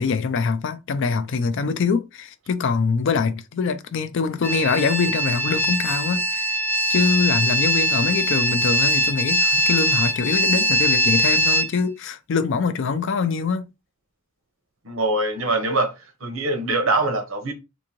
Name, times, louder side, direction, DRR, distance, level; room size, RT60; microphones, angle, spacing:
voice 1, 0.0-6.5 6.9-13.6, left 5 dB, 60° left, 0.4 m, -24 dB
sound 1, 4.4-11.7, right 1 dB, 10° left, 0.7 m, -21 dB
voice 2, 14.8-15.9 16.2-17.5, right 2 dB, 70° right, 1.0 m, -23 dB
3.7 x 2.6 x 3.0 m
head